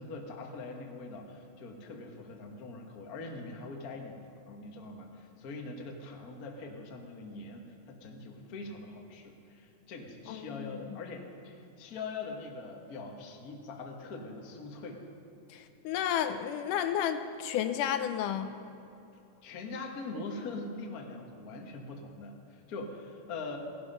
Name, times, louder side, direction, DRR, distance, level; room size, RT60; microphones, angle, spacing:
voice 1, 0.0-4.2 4.5-15.0 19.4-23.6, left 3 dB, 50° left, 1 dB, 1.1 m, -42 dB
voice 2, 10.3-11.0 15.5-18.5, left 9 dB, 80° left, 9 dB, 2.1 m, -32 dB
17.5 x 11.0 x 5.5 m, 2.8 s
omnidirectional pair, 3.8 m